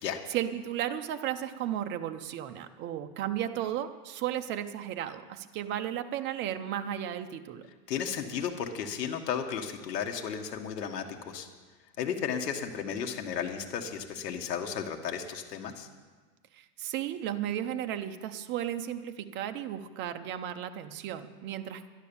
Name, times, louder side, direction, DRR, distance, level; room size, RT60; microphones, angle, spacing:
voice 1, 0.3-7.6 16.5-21.9, right 11 dB, 25° right, 8 dB, 0.6 m, -34 dB
voice 2, 7.9-11.5 12.0-15.9, left 7 dB, 75° left, 3 dB, 1.7 m, -34 dB
11.5 x 10.5 x 7.1 m, 1.4 s
supercardioid pair, 140°, 48 cm